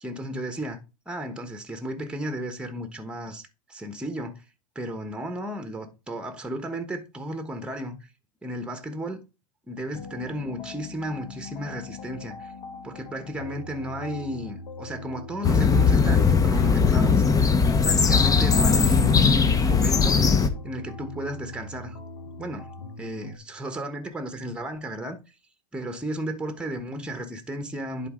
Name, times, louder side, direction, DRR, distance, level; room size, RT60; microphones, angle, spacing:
voice 1, 0.0-4.4 4.7-8.1 8.4-9.2 9.7-12.5 12.8-17.2 17.8-20.2 20.6-22.7 23.0-25.2 25.7-28.1, equal, 5° right, 1.2 m, -34 dB
sound 1, 9.9-23.4, left 4 dB, 80° left, 1.5 m, -41 dB
sound 2, 15.4-20.5, left 5 dB, 15° left, 0.9 m, -19 dB
10.5 x 4.2 x 3.8 m
hypercardioid pair, 115°, 20 cm